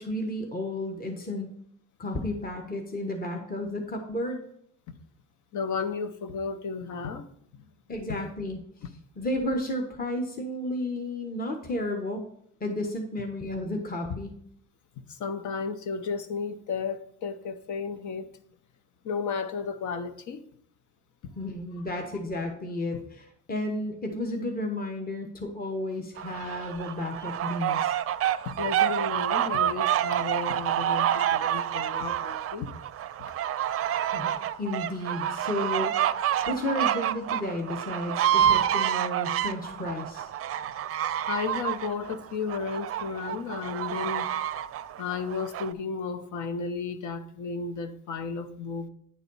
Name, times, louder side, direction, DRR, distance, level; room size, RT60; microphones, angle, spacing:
voice 1, 0.0-1.5 2.0-4.4 7.9-8.6 9.2-12.2 12.6-14.3 21.4-27.9 34.1-34.3 34.6-36.0 36.2-40.3, left 1 dB, 30° left, 1.1 m, -32 dB
voice 2, 5.5-7.3 7.5-7.6 8.1-8.2 15.0-18.3 19.0-20.4 21.2-21.3 28.4-32.7 33.2-33.3 40.6-44.3 45.0-48.9, left 5 dB, 75° left, 0.9 m, -33 dB
sound 1, 26.2-45.7, right 10 dB, 50° right, 0.4 m, -28 dB
9.7 x 4.0 x 5.4 m
cardioid pair, 90°, 30 cm